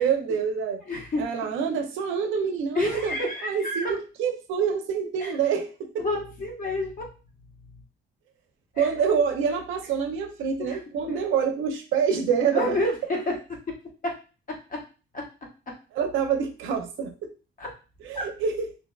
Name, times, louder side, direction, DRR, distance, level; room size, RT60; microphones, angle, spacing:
voice 1, 0.0-0.8 1.2-3.2 3.4-6.1 8.8-12.8 15.9-17.3 18.0-18.7, right 7 dB, 85° right, 5 dB, 0.5 m, -26 dB
voice 2, 0.9-1.2 2.7-3.9 5.2-5.4 6.0-7.1 7.6-7.8 8.8-8.9 10.6-10.8 11.1-11.2 12.5-13.2 13.5-13.6 14.0-14.1 14.5-14.8 15.1-15.2 17.6-17.7 18.1-18.2, left 2 dB, 45° left, 0 dB, 1.0 m, -29 dB
2.5 x 2.3 x 2.2 m, 0.34 s
cardioid pair, 90°, 20 cm